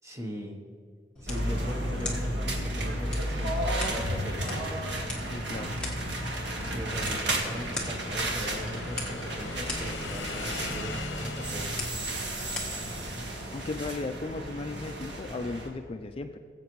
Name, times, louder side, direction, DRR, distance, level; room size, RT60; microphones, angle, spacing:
voice 1, 0.0-0.6 1.2-4.8 6.7-11.7, equal, 15° right, 2 dB, 1.0 m, -39 dB
sound 1, 1.2-13.2, left 2 dB, 5° left, 1.4 m, -43 dB
sound 2, 1.3-15.7, right 1 dB, 65° right, 1.6 m, -33 dB
Motorcycle / Engine, 5.2-12.2, left 3 dB, 70° left, 0.8 m, -42 dB
voice 2, 5.3-5.7 13.5-16.4, left 3 dB, 30° left, 7 dB, 0.3 m, -36 dB
19.5 x 8.0 x 3.1 m, 2.3 s
head